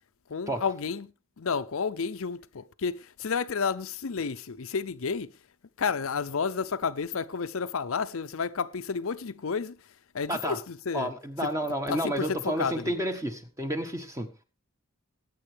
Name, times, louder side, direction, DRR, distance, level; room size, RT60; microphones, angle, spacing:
voice 1, 0.3-1.1 1.4-5.3 5.8-9.8 10.1-11.1 11.4-11.5 11.9-12.9, left 5 dB, 70° left, 0.6 m, -31 dB
voice 2, 10.9-14.4, right 1 dB, 15° right, 1.5 m, -31 dB
20.5 x 9.2 x 3.4 m
head